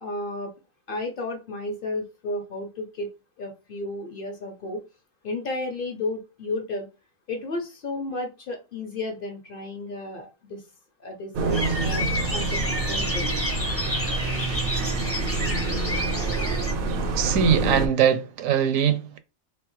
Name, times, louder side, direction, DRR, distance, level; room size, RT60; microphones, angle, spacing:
voice 1, 0.0-0.5 0.9-4.8 5.2-6.9 7.3-10.6 11.0-12.1 12.3-13.3, left 2 dB, 50° left, 0.7 m, -33 dB
sound 1, 11.3-17.9, right 3 dB, 60° right, 0.6 m, -27 dB
sound 2, 11.5-16.7, left 1 dB, 15° left, 0.6 m, -30 dB
voice 2, 17.2-19.2, right 8 dB, 75° right, 1.0 m, -22 dB
3.5 x 3.1 x 3.0 m
omnidirectional pair, 1.4 m